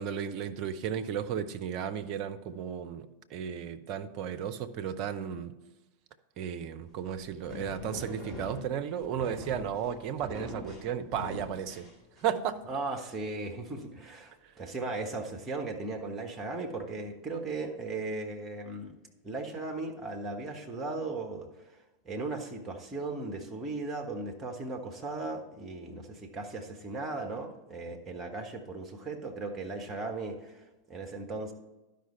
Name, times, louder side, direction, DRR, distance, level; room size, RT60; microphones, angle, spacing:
voice 1, 0.0-5.6 6.4-11.9 12.2-12.6, right 8 dB, 40° right, 9 dB, 0.6 m, -34 dB
sound 1, 6.9-12.5, left 1 dB, 15° left, 2.0 m, -43 dB
voice 2, 12.7-18.9 19.2-21.5 22.0-31.5, right 3 dB, 15° right, 3 dB, 1.2 m, -37 dB
11.5 x 5.2 x 4.4 m, 1.0 s
figure-of-eight pair, 90°, 0 cm